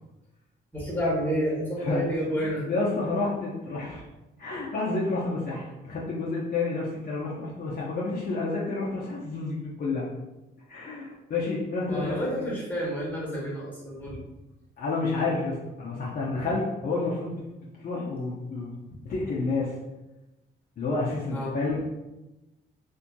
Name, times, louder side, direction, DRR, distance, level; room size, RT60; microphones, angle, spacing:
voice 1, 0.7-2.6 11.9-14.2 21.3-21.5, equal, 10° left, -6 dB, 1.3 m, -29 dB
voice 2, 2.4-4.0 4.4-10.1 10.7-12.5 14.8-17.4 17.8-18.7 19.0-19.7 20.8-21.8, left 3 dB, 45° left, -6 dB, 0.6 m, -30 dB
2.6 x 2.5 x 2.2 m, 1.0 s
cardioid pair, 90°, 20 cm